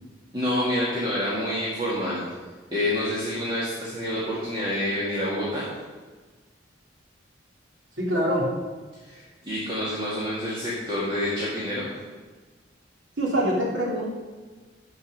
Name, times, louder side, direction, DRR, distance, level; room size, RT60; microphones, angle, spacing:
voice 1, 0.3-2.2 2.7-5.7 9.0-11.9, left 1 dB, 25° right, -8 dB, 2.0 m, -28 dB
voice 2, 8.0-8.5 13.2-14.1, equal, 85° right, -4 dB, 3.0 m, -24 dB
13.0 x 5.3 x 5.3 m, 1.3 s
head